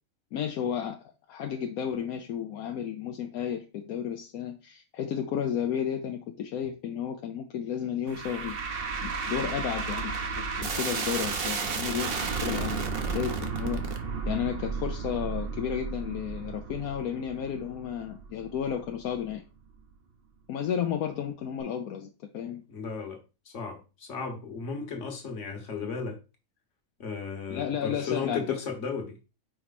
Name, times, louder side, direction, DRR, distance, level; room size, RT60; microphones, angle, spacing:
voice 1, 0.3-13.8 14.3-19.4 20.5-22.6 27.5-28.6, left 8 dB, 80° left, 1.1 m, -33 dB
sound 1, 8.1-19.3, right 5 dB, 50° right, 0.9 m, -33 dB
voice 2, 22.7-26.2 27.0-29.2, left 5 dB, 55° left, 1.6 m, -35 dB
5.2 x 4.5 x 4.1 m
omnidirectional pair, 1.5 m